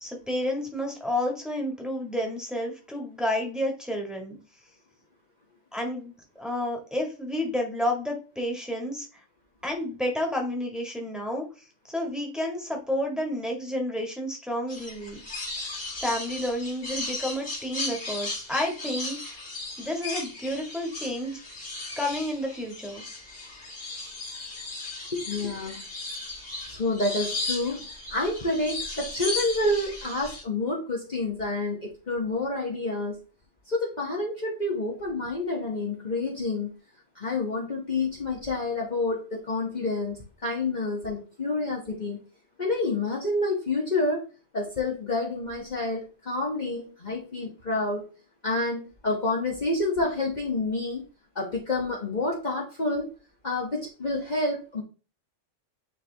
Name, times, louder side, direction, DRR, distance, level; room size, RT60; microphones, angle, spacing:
voice 1, 0.0-4.4 5.7-9.2 9.6-11.4 11.8-15.2 16.0-19.4 19.8-21.4 22.0-23.0, left 1 dB, ahead, 0 dB, 1.8 m, -30 dB
sound 1, 14.7-30.4, left 2 dB, 80° left, 2.7 m, -36 dB
voice 2, 25.1-25.8 26.7-33.2 33.7-36.7 37.1-42.2 42.6-44.2 44.5-48.1 48.4-51.1 51.3-53.1 53.4-54.8, left 2 dB, 35° left, -3 dB, 1.3 m, -28 dB
9.4 x 3.4 x 3.4 m, 0.34 s
omnidirectional pair, 1.3 m